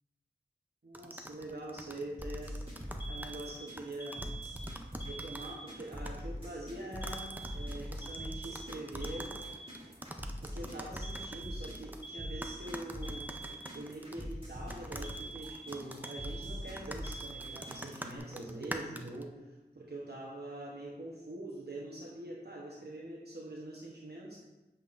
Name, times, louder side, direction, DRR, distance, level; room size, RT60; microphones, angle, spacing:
voice 1, 0.8-2.5 3.1-4.3 5.0-9.4 10.4-13.3 13.7-24.4, right 1 dB, 65° right, -4 dB, 0.9 m, -44 dB
sound 1, 0.9-5.5 5.8-6.2 6.9-12.0 12.4-14.3 14.7-19.2, right 1 dB, 10° right, 0.5 m, -46 dB
sound 2, 2.2-18.2, equal, 30° right, 2.0 m, -43 dB
Alarm, 3.0-6.0 7.0-10.0 11.0-14.0 15.0-18.0, right 3 dB, 85° left, 0.9 m, -46 dB
7.7 x 5.5 x 2.5 m, 1.1 s
wide cardioid pair, 40°, 18 cm